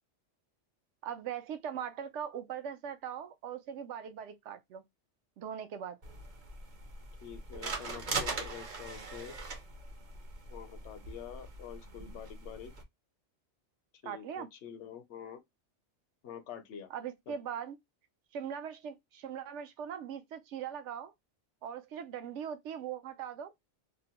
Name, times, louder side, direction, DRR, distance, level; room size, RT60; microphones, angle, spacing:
voice 1, 1.0-4.8 5.4-6.0 14.0-14.5 16.9-17.8 18.3-21.1 21.6-23.5, right 8 dB, 75° right, 0.9 m, -40 dB
sound 1, 6.0-12.8, right 3 dB, 45° right, 0.7 m, -41 dB
voice 2, 7.2-9.4 10.5-12.7 14.0-15.4 16.2-16.9 17.3-17.4, left 9 dB, 75° left, 0.9 m, -46 dB
2.6 x 2.1 x 2.8 m
omnidirectional pair, 1.2 m